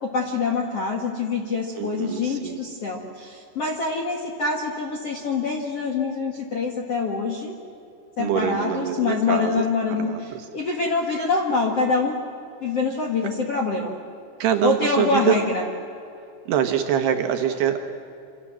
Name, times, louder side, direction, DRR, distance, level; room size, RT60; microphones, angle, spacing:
voice 1, 0.0-7.5 8.2-12.2 12.6-13.9 14.6-15.6, left 4 dB, 50° left, 0 dB, 1.9 m, -25 dB
voice 2, 1.8-2.7 8.2-9.6 10.0-10.5 14.4-15.4 16.5-17.9, right 9 dB, 65° right, 6 dB, 3.0 m, -24 dB
28.0 x 26.5 x 7.6 m, 2.6 s
omnidirectional pair, 5.6 m